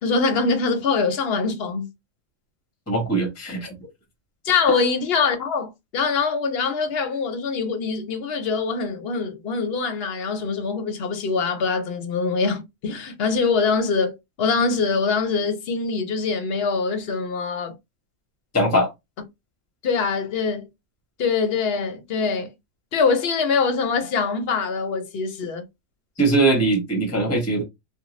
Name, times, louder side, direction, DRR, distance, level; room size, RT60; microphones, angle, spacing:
voice 1, 0.0-1.9 4.4-17.7 19.8-20.7 21.2-22.5 22.9-25.6, left 4 dB, 60° left, 0.8 m, -23 dB
voice 2, 2.9-3.7 18.5-18.9 26.2-27.6, right 2 dB, 15° left, 0.8 m, -21 dB
2.4 x 2.2 x 3.0 m
omnidirectional pair, 1.3 m